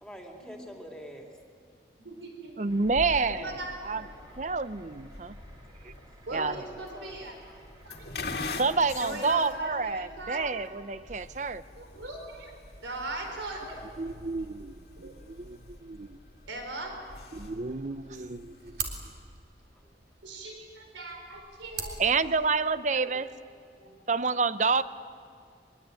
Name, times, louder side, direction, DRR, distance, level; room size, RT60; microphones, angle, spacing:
voice 1, 0.0-1.3 4.2-4.7 6.3-7.2 7.5-7.8 17.9-18.0 19.7-20.2, equal, 5° left, 1 dB, 2.7 m, -47 dB
voice 2, 2.0-2.9 3.3-4.1 6.3-7.4 7.8-8.1 9.0-10.5 11.8-12.6 12.8-13.8 15.0-15.2 16.5-17.0 20.2-22.2 22.9-23.2 23.8-24.0, right 2 dB, 90° right, 3 dB, 4.3 m, -40 dB
voice 3, 2.6-3.4 3.9-4.0 4.4-5.3 5.8-5.9 6.3-6.5 8.6-11.6 14.0-16.2 17.3-18.8 22.0-23.3 24.1-24.8, right 4 dB, 40° right, 14 dB, 0.7 m, -29 dB
sound 1, 2.7-10.0, right 1 dB, 20° right, 3.3 m, -57 dB
sound 2, 2.8-19.0, left 3 dB, 60° left, 2.1 m, -44 dB
sound 3, 18.0-23.0, right 5 dB, 60° right, 3.5 m, -43 dB
23.5 x 22.5 x 9.0 m, 2.3 s
head